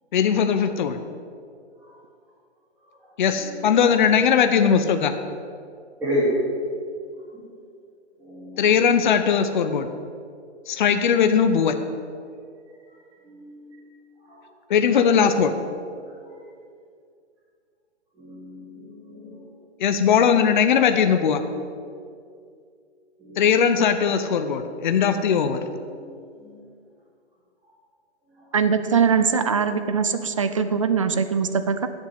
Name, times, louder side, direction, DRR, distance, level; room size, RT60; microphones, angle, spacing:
voice 1, 0.1-1.0 3.2-5.1 8.6-9.9 10.7-11.8 14.7-15.5 19.8-21.4 23.4-25.6, left 7 dB, 45° left, 9 dB, 0.7 m, -19 dB
voice 2, 6.0-6.3 8.2-8.6 13.2-13.8 14.3-14.4 16.2-16.3 18.1-19.4 21.7-21.9 23.2-23.4 25.9-26.1 26.4-26.5, equal, 5° right, -13 dB, 2.6 m, -31 dB
voice 3, 28.5-31.9, right 6 dB, 30° right, 10 dB, 0.4 m, -22 dB
8.2 x 7.6 x 8.7 m, 2.3 s
hypercardioid pair, 160°, 35 cm